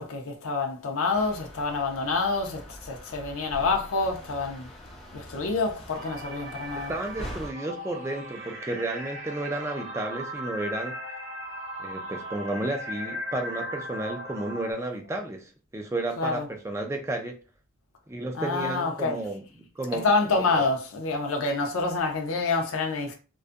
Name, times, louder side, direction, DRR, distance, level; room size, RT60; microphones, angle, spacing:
voice 1, 0.0-4.7 5.1-6.9 16.2-16.5 18.3-19.2 20.0-23.1, left 3 dB, 75° left, 0.5 m, -27 dB
sound 1, 1.1-7.5, equal, 30° left, 0.6 m, -43 dB
sound 2, 5.9-14.7, equal, 60° right, 0.7 m, -38 dB
voice 2, 6.9-10.9 11.8-17.4 18.1-20.1 20.5-20.6, right 2 dB, 15° right, 0.3 m, -32 dB
2.5 x 2.3 x 2.5 m
head